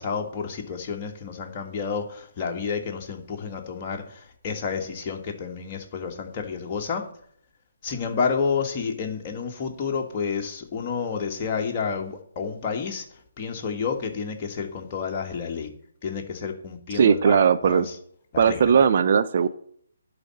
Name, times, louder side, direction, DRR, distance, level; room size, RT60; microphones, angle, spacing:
voice 1, 0.0-7.1 7.8-13.1 13.4-15.7 16.0-17.8 18.3-18.7, left 5 dB, 30° left, 2 dB, 1.7 m, -30 dB
voice 2, 16.9-17.9 18.4-19.5, right 7 dB, 50° right, 11 dB, 0.5 m, -18 dB
11.0 x 4.1 x 7.7 m, 0.64 s
figure-of-eight pair, 140°, 0 cm